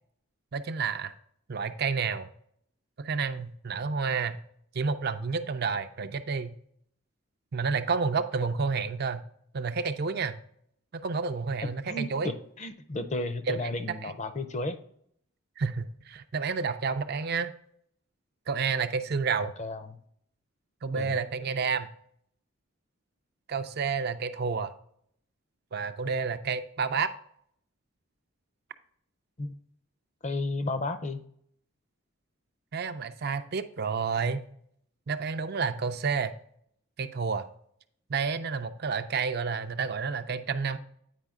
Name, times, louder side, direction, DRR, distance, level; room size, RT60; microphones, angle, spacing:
voice 1, 0.5-1.1 1.5-2.3 3.0-4.4 4.7-6.5 7.5-9.2 9.5-10.4 10.9-12.3 13.5-13.6 14.0-14.1 15.6-17.5 18.5-19.5 20.8-21.9 23.5-24.7 25.7-27.1 32.7-34.4 35.1-36.3 37.0-37.5 38.1-40.8, right 5 dB, 45° right, 9 dB, 0.4 m, -30 dB
voice 2, 11.6-14.8 19.4-20.0 21.0-21.1 29.4-29.6 30.2-31.2, left 2 dB, 35° left, 10 dB, 0.5 m, -33 dB
9.1 x 4.8 x 3.6 m, 0.67 s
head